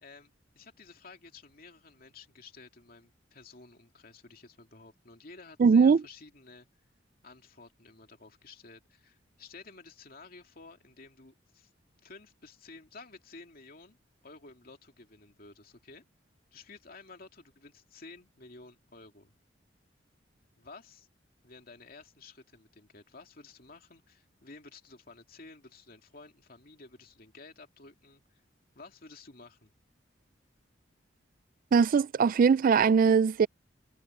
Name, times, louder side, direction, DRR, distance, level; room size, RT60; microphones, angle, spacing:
voice 1, 0.0-6.7 7.2-11.7 12.0-14.0 14.2-16.0 16.5-19.3 20.6-21.1 21.4-28.4 28.7-29.7, left 3 dB, 50° left, 2.7 m, -52 dB
voice 2, 5.6-6.0 31.7-33.5, right 6 dB, 50° right, 0.3 m, -21 dB
head